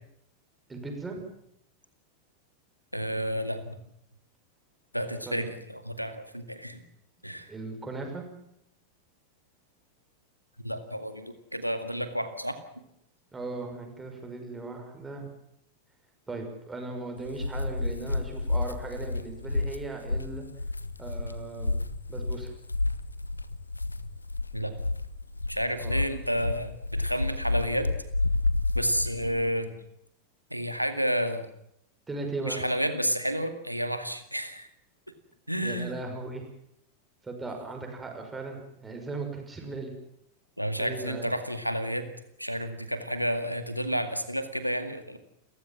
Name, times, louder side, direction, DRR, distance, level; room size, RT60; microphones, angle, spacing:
voice 1, 0.7-1.2 5.3-5.4 7.5-8.2 13.3-15.3 16.3-20.5 21.0-21.8 22.1-22.5 25.8-26.0 32.1-32.6 35.6-36.4 37.2-39.9 40.8-41.3, right 3 dB, 10° right, 3 dB, 5.9 m, -37 dB
voice 2, 2.9-3.8 4.9-6.8 7.2-7.5 10.6-12.6 24.5-24.7 25.5-27.9 28.7-29.7 30.5-31.5 32.4-34.7 35.5-35.9 40.6-42.0 42.4-45.2, equal, 90° right, 8 dB, 2.1 m, -30 dB
sound 1, 17.2-29.5, left 2 dB, 85° left, 1.0 m, -30 dB
30.0 x 15.0 x 7.5 m, 0.76 s
figure-of-eight pair, 90°, 0 cm